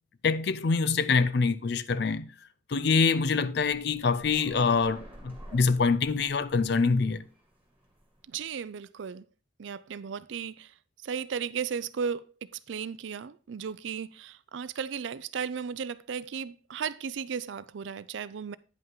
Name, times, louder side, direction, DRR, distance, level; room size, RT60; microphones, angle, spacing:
voice 1, 0.2-2.3 2.7-7.2, left 4 dB, 60° left, 0.5 m, -25 dB
sound 1, 3.5-8.5, right 1 dB, 10° right, 2.1 m, -50 dB
voice 2, 8.3-9.3 9.6-10.7 11.0-18.6, right 6 dB, 70° right, 0.4 m, -35 dB
9.5 x 5.5 x 3.7 m
head